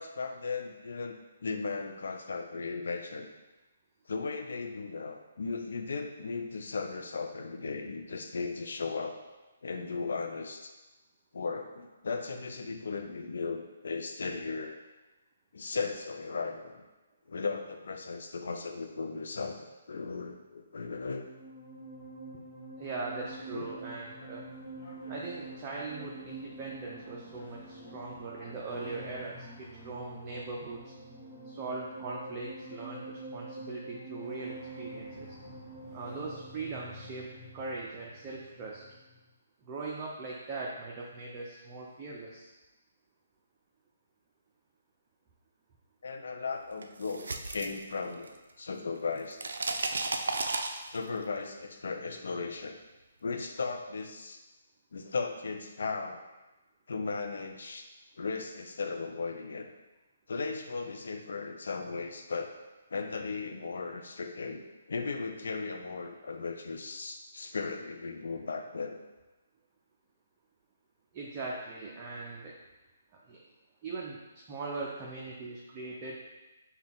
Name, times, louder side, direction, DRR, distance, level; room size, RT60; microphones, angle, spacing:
voice 1, 0.0-3.3 4.1-9.2 9.6-10.7 11.3-14.7 15.5-16.8 17.3-19.6 19.9-21.3 23.5-23.7 46.0-48.3 48.6-49.5 50.9-52.8 53.2-54.4 54.9-56.2 56.9-57.9 58.2-59.7 60.3-62.5 62.9-64.6 64.9-69.0, left 4 dB, 70° left, 4 dB, 0.5 m, -36 dB
sound 1, 20.8-39.3, right 1 dB, 5° left, 1.3 m, -47 dB
voice 2, 22.8-24.5 25.1-30.9 31.4-35.4 35.9-37.3 37.5-38.8 39.6-42.5 71.1-72.5 73.3-73.4 73.8-74.2 74.5-76.2, right 3 dB, 30° right, -4 dB, 0.6 m, -40 dB
sound 2, 23.1-29.1, left 1 dB, 50° left, 0.9 m, -55 dB
sound 3, 46.8-48.5 48.8-51.2, right 3 dB, 75° right, 0.4 m, -34 dB
5.4 x 2.4 x 3.5 m, 1.1 s
figure-of-eight pair, 140°, 0 cm